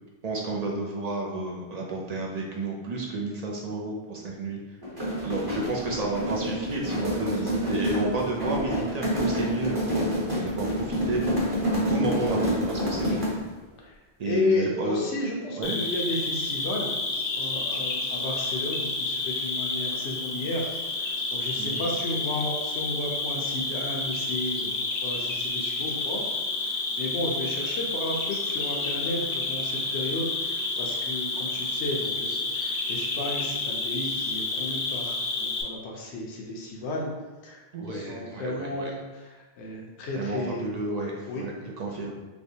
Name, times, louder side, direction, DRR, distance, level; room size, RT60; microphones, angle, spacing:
voice 1, 0.2-4.6 5.2-13.2 14.2-15.0 15.6-15.8 21.6-21.8 37.7-38.9 40.1-42.2, right 2 dB, 60° right, -1 dB, 0.4 m, -31 dB
sound 1, 4.8-13.5, equal, 25° right, 0.8 m, -28 dB
voice 2, 14.3-17.0 17.4-20.7 20.9-26.2 26.6-35.1 35.4-37.1 37.4-40.7 41.3-41.4, left 2 dB, 85° left, -1 dB, 0.9 m, -33 dB
Cricket, 15.6-35.6, left 3 dB, 55° left, 0.5 m, -30 dB
3.3 x 3.0 x 2.7 m, 1.2 s
omnidirectional pair, 1.1 m